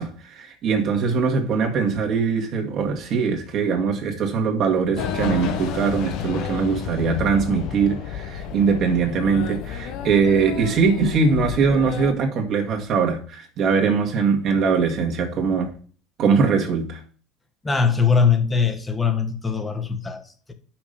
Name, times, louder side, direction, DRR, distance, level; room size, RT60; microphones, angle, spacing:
voice 1, 0.0-15.7 16.2-17.0, right 5 dB, 55° right, 1.9 m, -21 dB
sound 1, 4.9-12.1, left 8 dB, 65° left, 0.9 m, -31 dB
voice 2, 17.6-20.5, left 5 dB, 20° left, 1.4 m, -21 dB
6.0 x 5.1 x 6.8 m
supercardioid pair, 85°, 0 cm